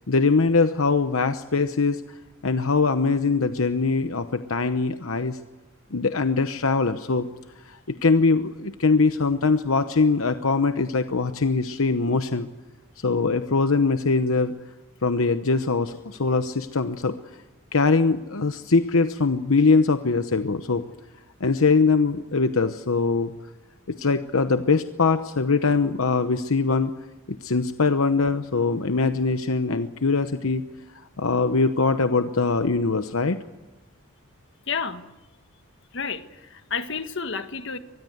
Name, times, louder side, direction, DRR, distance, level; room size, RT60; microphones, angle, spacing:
voice 1, 0.1-2.0 2.4-5.4 5.9-7.3 7.7-12.5 13.0-14.5 15.0-17.2 17.7-20.8 21.4-23.3 23.9-26.9 27.3-30.6 31.2-33.4, left 4 dB, 85° left, 9 dB, 0.9 m, -22 dB
voice 2, 34.7-35.0 35.9-37.8, left 5 dB, 60° left, 8 dB, 1.7 m, -30 dB
24.5 x 20.0 x 8.0 m, 1.1 s
head